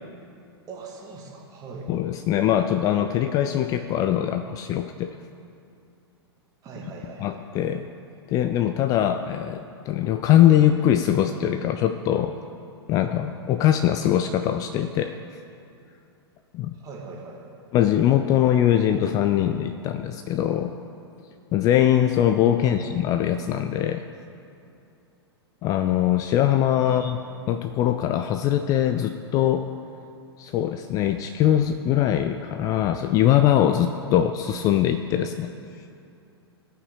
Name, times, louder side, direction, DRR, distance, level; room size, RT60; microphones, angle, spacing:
voice 1, 0.7-1.9 6.6-7.4 16.7-17.5 22.6-22.9 26.9-27.1, right 4 dB, 25° right, -1 dB, 1.9 m, -41 dB
voice 2, 1.9-5.2 7.2-7.9 8.3-12.3 12.9-15.2 16.5-16.8 17.7-20.7 21.5-24.0 25.6-27.2 27.5-29.7 30.4-35.5, left 11 dB, 25° left, 8 dB, 0.3 m, -22 dB
16.0 x 5.7 x 4.7 m, 2.6 s
figure-of-eight pair, 100°, 14 cm